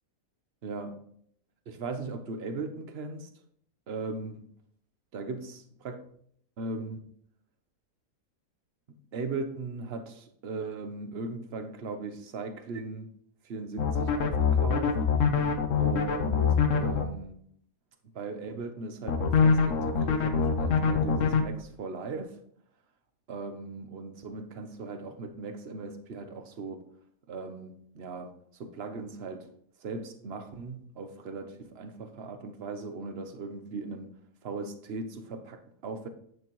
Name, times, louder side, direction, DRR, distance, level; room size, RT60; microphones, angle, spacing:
voice 1, 0.6-1.0 1.7-3.3 3.9-4.5 5.1-5.6 5.8-6.0 6.6-7.1 8.9-13.1 13.4-15.0 15.8-17.4 18.1-22.4 23.3-26.8 27.3-29.5 29.8-34.1 34.4-36.1, right 3 dB, 45° right, 1.1 m, -38 dB
sound 1, 13.8-17.0 19.1-21.4, left 6 dB, 60° left, 1.1 m, -24 dB
10.5 x 8.7 x 3.2 m
omnidirectional pair, 1.7 m